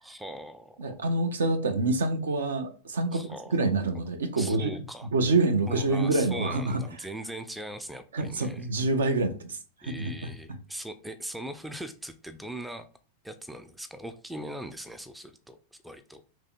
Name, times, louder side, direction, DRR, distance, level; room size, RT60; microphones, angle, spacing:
voice 1, 0.0-1.0 3.1-5.1 5.7-8.7 9.8-12.9 13.2-16.2, right 1 dB, 5° right, 0.4 m, -40 dB
voice 2, 0.8-4.7 5.1-6.8 8.1-9.6 9.8-10.1, right 2 dB, 65° right, 0.5 m, -26 dB
3.0 x 2.7 x 4.0 m
figure-of-eight pair, 90°, 0 cm